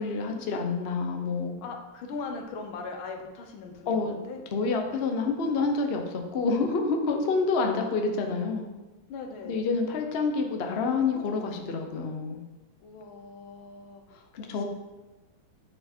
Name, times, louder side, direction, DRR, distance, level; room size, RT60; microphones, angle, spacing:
voice 1, 0.0-1.5 3.9-4.2 4.5-8.7 9.4-12.4 14.3-14.6, left 4 dB, 50° left, 3 dB, 0.7 m, -28 dB
voice 2, 1.6-4.4 7.9-8.2 9.1-9.6 12.8-14.6, left 4 dB, 85° left, 4 dB, 1.7 m, -40 dB
8.8 x 4.5 x 4.4 m, 1.1 s
omnidirectional pair, 2.2 m